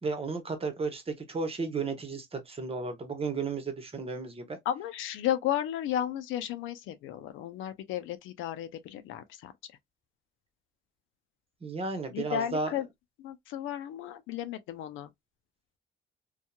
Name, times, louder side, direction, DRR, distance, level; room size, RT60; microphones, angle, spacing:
voice 1, 0.0-4.6 11.6-12.7, right 4 dB, 30° right, 1.0 m, -33 dB
voice 2, 4.7-9.5 12.1-12.8 13.2-15.1, left 11 dB, 90° left, 0.5 m, -33 dB
2.8 x 2.3 x 2.2 m
cardioid pair, 90°, 20 cm